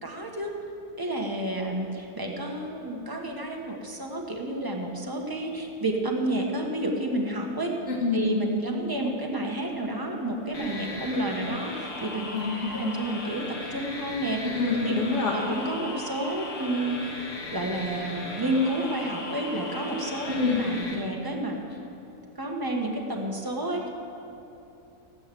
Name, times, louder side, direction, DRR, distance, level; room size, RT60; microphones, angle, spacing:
voice 1, 0.0-0.5 1.0-7.7 8.1-12.3 12.7-14.4 14.8-14.9 15.3-17.0 17.5-20.3 20.6-21.6 22.4-23.9, right 1 dB, 15° right, 0 dB, 1.3 m, -30 dB
voice 2, 7.9-8.2 12.3-12.8 14.4-15.4 20.3-20.6, left 4 dB, 50° left, -1 dB, 2.1 m, -26 dB
sound 1, 10.5-20.9, left 2 dB, 85° left, 2.1 m, -37 dB
16.5 x 8.3 x 7.8 m, 2.8 s
omnidirectional pair, 1.6 m